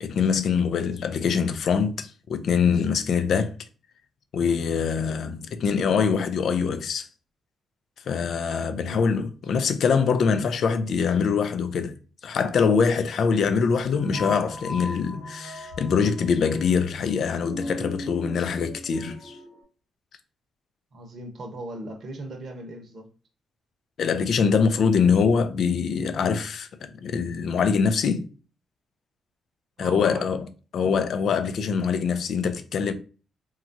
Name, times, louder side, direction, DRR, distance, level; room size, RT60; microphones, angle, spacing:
voice 1, 0.0-3.5 4.3-7.1 8.1-11.9 12.2-19.4 24.0-28.3 29.8-30.5 30.7-32.9, left 6 dB, 70° left, 0.4 m, -24 dB
voice 2, 8.8-9.6 20.9-23.1 29.8-30.3, right 1 dB, 60° right, 0.8 m, -39 dB
sound 1, 14.0-19.6, left 1 dB, 85° left, 0.9 m, -38 dB
3.0 x 2.3 x 2.5 m
cardioid pair, 80°, 0 cm